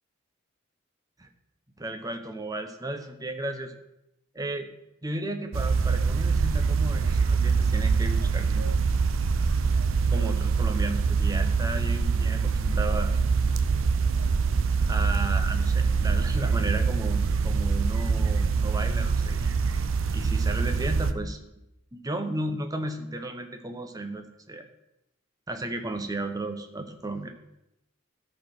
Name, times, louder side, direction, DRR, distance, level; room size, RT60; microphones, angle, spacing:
voice 1, 1.8-3.7 4.3-4.7 5.0-8.8 10.1-13.1 14.8-19.5 20.1-21.4 21.9-24.7 25.5-27.3, right 1 dB, 20° right, 6 dB, 0.8 m, -34 dB
sound 1, 5.5-21.1, right 5 dB, 70° right, 0.6 m, -24 dB
12.5 x 4.4 x 5.9 m, 0.88 s
head